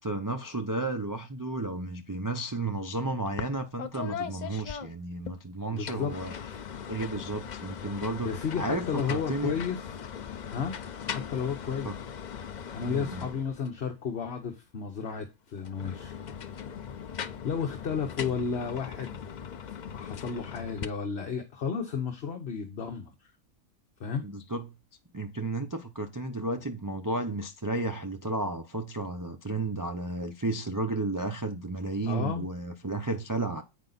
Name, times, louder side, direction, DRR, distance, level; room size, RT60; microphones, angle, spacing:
voice 1, 0.0-6.3 6.9-9.6 11.8-12.0 12.9-13.3 24.2-24.7 25.1-33.6, right 2 dB, 30° right, 0.3 m, -33 dB
sound 1, 3.4-3.5 3.8-5.4 5.8-13.8 15.6-20.8, left 7 dB, 70° left, 0.4 m, -39 dB
voice 2, 5.7-6.1 8.2-9.8 10.5-10.7 11.0-11.9 12.7-16.2 17.4-19.3 19.9-23.1 24.0-24.2 32.1-32.5, left 6 dB, 45° left, 1.2 m, -32 dB
8.4 x 5.4 x 4.0 m
omnidirectional pair, 1.5 m